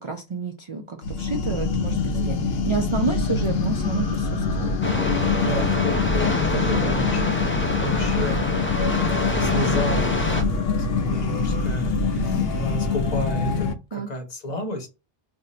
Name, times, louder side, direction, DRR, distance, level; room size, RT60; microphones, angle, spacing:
voice 1, 0.0-5.7 6.5-7.1 12.2-12.5 13.9-14.1, right 4 dB, 50° right, 4 dB, 0.3 m, -30 dB
sound 1, 1.0-13.7, left 4 dB, 75° left, 0.8 m, -24 dB
voice 2, 2.1-2.5 5.4-7.2 7.8-8.4 8.9-10.1 10.6-14.9, equal, 40° left, 2 dB, 1.1 m, -32 dB
sound 2, 4.8-10.4, left 1 dB, 15° left, 0.5 m, -26 dB
2.6 x 2.6 x 4.1 m, 0.28 s
omnidirectional pair, 1.1 m